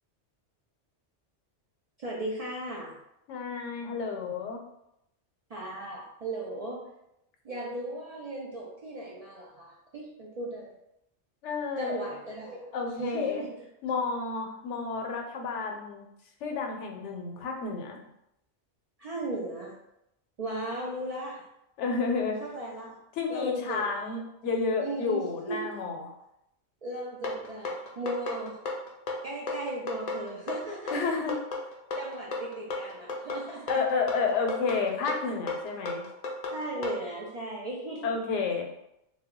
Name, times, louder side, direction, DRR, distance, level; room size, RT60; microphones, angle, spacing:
voice 1, 2.0-2.9 5.5-6.8 7.4-10.7 11.8-12.7 13.0-13.5 19.0-19.7 20.4-21.4 22.4-22.9 23.3-23.9 24.8-25.8 26.8-28.6 29.2-31.0 32.0-33.8 36.5-38.1, right 1 dB, 65° right, -4 dB, 0.3 m, -36 dB
voice 2, 3.3-4.6 11.4-12.0 12.7-13.4 13.8-16.1 16.4-18.0 21.8-22.4 23.2-26.1 30.9-31.3 33.7-36.0 38.0-38.7, left 4 dB, 85° left, 2 dB, 0.9 m, -30 dB
sound 1, 27.2-37.0, left 3 dB, 55° left, 0.4 m, -34 dB
2.2 x 2.1 x 3.6 m, 0.83 s
omnidirectional pair, 1.2 m